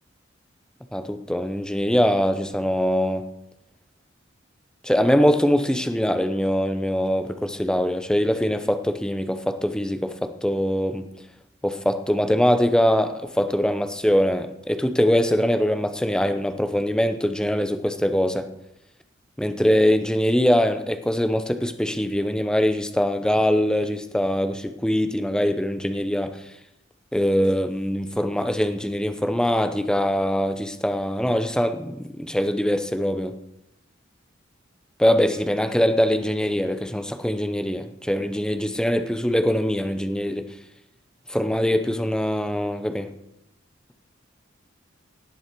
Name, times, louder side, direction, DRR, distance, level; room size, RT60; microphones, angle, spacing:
voice 1, 0.9-3.2 4.8-11.1 11.6-18.5 19.4-26.4 27.1-33.3 35.0-40.5 41.3-43.1, equal, 5° left, 8 dB, 0.7 m, -22 dB
17.5 x 9.5 x 4.6 m, 0.90 s
head